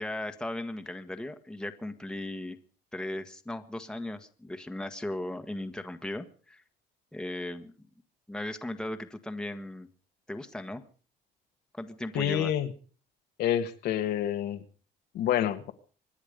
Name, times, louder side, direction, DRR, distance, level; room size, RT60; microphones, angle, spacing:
voice 1, 0.0-2.6 2.9-6.6 7.1-7.7 8.3-9.9 10.3-10.8 11.7-12.5, left 1 dB, 5° left, 1.4 m, -37 dB
voice 2, 12.1-12.7 13.4-14.6 15.1-15.7, left 11 dB, 75° left, 1.6 m, -28 dB
25.5 x 10.0 x 5.2 m
cardioid pair, 110°, 17 cm